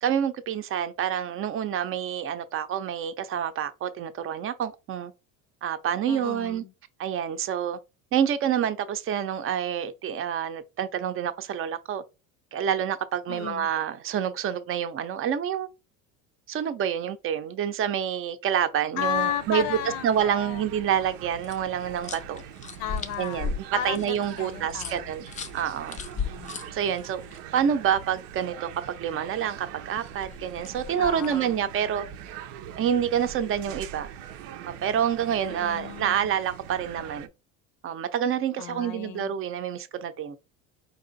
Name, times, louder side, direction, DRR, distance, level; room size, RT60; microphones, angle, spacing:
voice 1, 0.0-5.1 5.6-6.6 7.0-7.8 8.1-12.0 12.5-15.7 16.5-19.8 20.0-22.4 23.2-23.5 23.8-26.0 26.7-28.7 29.0-32.0 32.8-34.1 34.8-37.3 37.8-40.4, right 9 dB, 35° right, 0.6 m, -28 dB
voice 2, 6.0-6.7 13.3-13.7 19.0-20.7 22.8-25.1 26.1-26.7 31.0-31.7 35.5-36.3 38.6-39.3, left 10 dB, 75° left, 0.7 m, -34 dB
sound 1, 19.0-37.3, right 10 dB, 90° right, 0.7 m, -43 dB
sound 2, 21.4-27.4 30.0-31.4, left 5 dB, 20° left, 0.4 m, -37 dB
4.7 x 2.5 x 3.9 m
cardioid pair, 125°, 36 cm